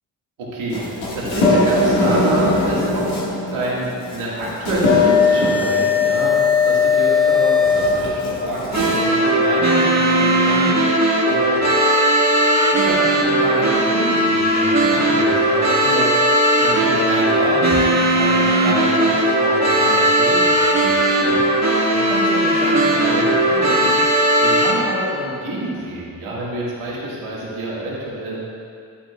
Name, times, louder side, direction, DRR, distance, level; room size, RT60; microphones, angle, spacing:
voice 1, 0.4-3.1 3.4-10.8 11.3-11.7 12.7-23.9 24.4-28.4, right 1 dB, 80° right, -6 dB, 2.3 m, -27 dB
sound 1, 0.7-9.0, left 4 dB, 80° left, 2.1 m, -18 dB
sound 2, 8.7-24.7, right 1 dB, 35° right, 1.6 m, -17 dB
11.0 x 9.2 x 2.5 m, 2.4 s
hypercardioid pair, 40°, 48 cm